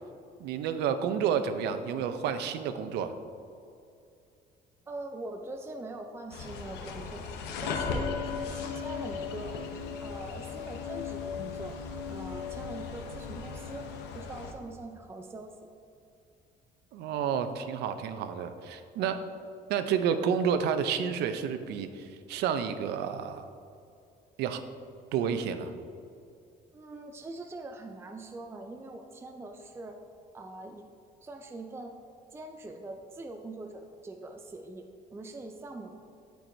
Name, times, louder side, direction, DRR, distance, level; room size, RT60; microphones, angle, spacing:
voice 1, 0.4-3.1 16.9-19.2 19.7-23.5 24.4-24.6 25.1-25.7, right 7 dB, 80° right, 10 dB, 0.6 m, -30 dB
voice 2, 4.9-9.6 10.0-11.8 12.1-13.9 14.1-15.5 26.7-30.0 30.3-30.9 31.2-31.9 32.3-35.9, right 2 dB, 15° right, 4 dB, 0.5 m, -43 dB
sound 1, 6.3-14.5, left 5 dB, 90° left, 0.8 m, -37 dB
13.0 x 4.6 x 2.7 m, 2.5 s
cardioid pair, 110°, 17 cm